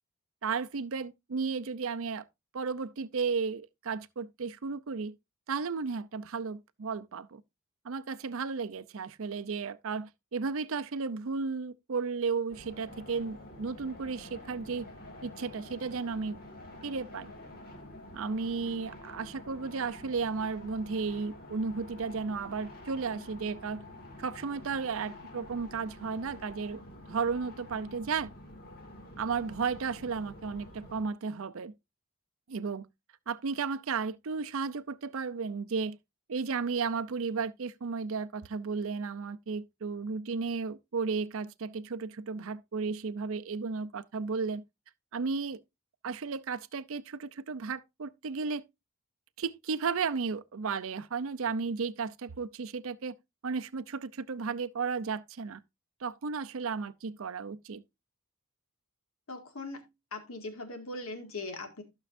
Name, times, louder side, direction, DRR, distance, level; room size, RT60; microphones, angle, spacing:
voice 1, 0.4-2.3 2.5-5.2 5.5-7.4 7.8-14.9 15.2-16.4 16.8-17.3 18.1-23.8 24.2-26.8 27.1-28.3 29.2-31.7 32.5-32.9 33.3-36.0 36.3-44.6 45.1-45.6 46.0-48.6 49.4-53.1 53.4-55.6 56.0-57.8, right 5 dB, 65° right, 0.5 m, -34 dB
sound 1, 12.5-31.0, left 1 dB, 40° left, 2.3 m, -48 dB
voice 2, 59.3-59.8 60.1-61.8, left 2 dB, 70° left, 2.1 m, -40 dB
15.0 x 6.1 x 2.6 m
head